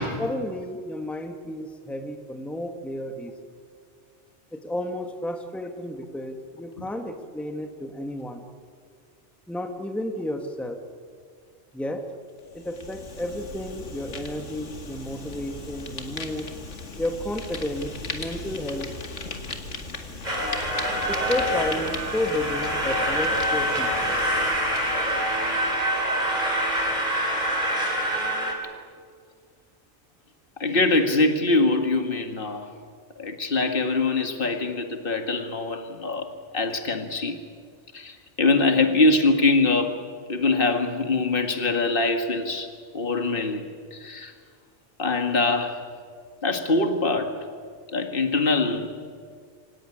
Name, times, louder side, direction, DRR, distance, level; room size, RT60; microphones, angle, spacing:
voice 1, 0.2-3.3 4.5-8.5 9.5-10.8 11.7-12.1 12.5-16.5 17.0-18.9 21.1-24.2, left 1 dB, ahead, 6 dB, 1.5 m, -32 dB
Fire, 12.4-25.8, left 3 dB, 75° left, 2.3 m, -37 dB
sound 1, 20.2-28.5, right 1 dB, 35° right, 4.2 m, -25 dB
voice 2, 30.6-32.7 33.2-36.3 36.5-37.4 37.9-40.0 40.3-42.7 42.9-44.3 45.0-45.8 46.4-47.4 47.9-48.9, left 3 dB, 50° left, 6 dB, 2.0 m, -23 dB
24.0 x 17.5 x 10.0 m, 2.1 s
omnidirectional pair, 1.2 m